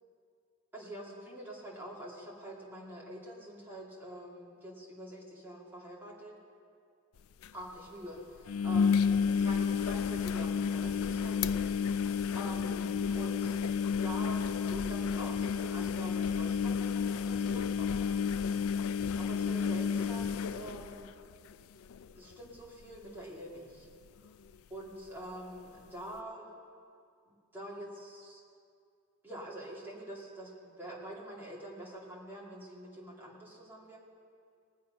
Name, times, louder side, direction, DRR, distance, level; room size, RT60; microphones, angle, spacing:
voice 1, 0.7-6.3 7.5-9.1 9.4-18.5 19.1-21.2 22.1-23.9 24.2-24.3 24.7-26.5 27.3-28.4 29.2-34.0, right 1 dB, 10° right, -5 dB, 2.4 m, -46 dB
sound 1, 7.2-7.3 7.4-7.5 8.5-21.5 21.9-22.3 22.6-22.7 24.5-24.6, left 6 dB, 65° left, 0.3 m, -31 dB
20.5 x 7.6 x 5.6 m, 2.4 s
head